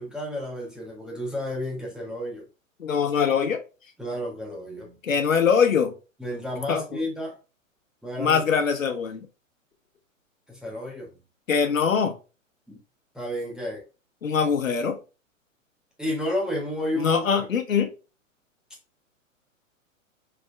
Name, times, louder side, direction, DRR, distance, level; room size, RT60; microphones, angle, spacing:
voice 1, 0.0-2.5 4.0-5.0 6.2-7.4 8.0-8.5 10.5-11.1 12.7-12.8 13.1-13.8 16.0-17.5, left 1 dB, ahead, -2 dB, 0.5 m, -31 dB
voice 2, 2.8-3.6 5.0-5.9 6.7-7.0 8.2-9.3 11.5-12.1 14.2-15.0 17.0-17.9, left 6 dB, 75° left, 6 dB, 0.9 m, -23 dB
5.2 x 3.5 x 2.4 m, 0.32 s
figure-of-eight pair, 110°, 40 cm